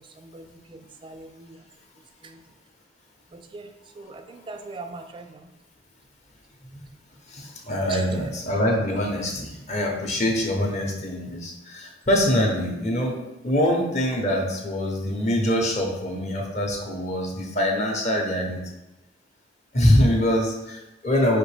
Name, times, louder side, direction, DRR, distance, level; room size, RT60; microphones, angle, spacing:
voice 1, 0.2-1.6 2.2-2.4 3.3-3.7 4.0-5.5 7.9-8.0, right 3 dB, 25° right, 7 dB, 0.3 m, -40 dB
voice 2, 7.3-13.2 13.4-18.6 19.7-21.4, left 1 dB, 40° left, 0 dB, 0.8 m, -24 dB
5.1 x 2.9 x 3.3 m, 0.99 s
head